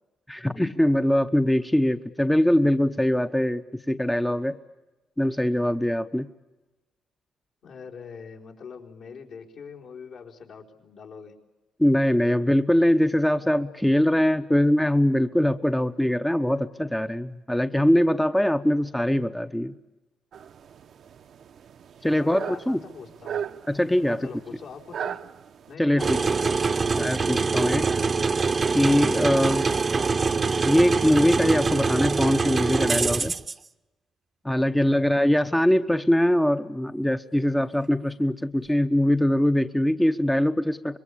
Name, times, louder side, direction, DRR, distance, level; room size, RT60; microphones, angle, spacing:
voice 1, 0.3-3.6 3.9-4.6 5.2-6.3 11.8-19.7 22.0-22.8 23.7-24.2 25.8-26.2 27.0-27.9 28.7-29.7 30.6-33.3 34.4-41.0, left 1 dB, 5° left, 9 dB, 0.8 m, -22 dB
voice 2, 7.6-11.3 22.0-23.5 24.1-25.2 25.7-26.9 34.6-34.9, left 5 dB, 70° left, -1 dB, 4.5 m, -43 dB
sound 1, 20.3-25.7, right 8 dB, 65° right, 0.9 m, -37 dB
sound 2, 26.0-33.5, right 4 dB, 35° right, 0.9 m, -24 dB
26.0 x 22.0 x 8.6 m, 1.1 s
cardioid pair, 90°, 0 cm